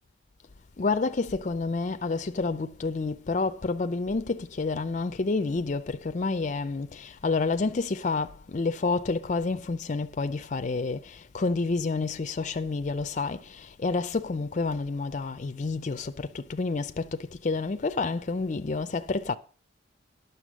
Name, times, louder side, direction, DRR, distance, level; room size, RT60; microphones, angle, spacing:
voice 1, 0.8-19.4, left 3 dB, 40° left, 0.5 m, -29 dB
10.0 x 6.9 x 6.2 m
head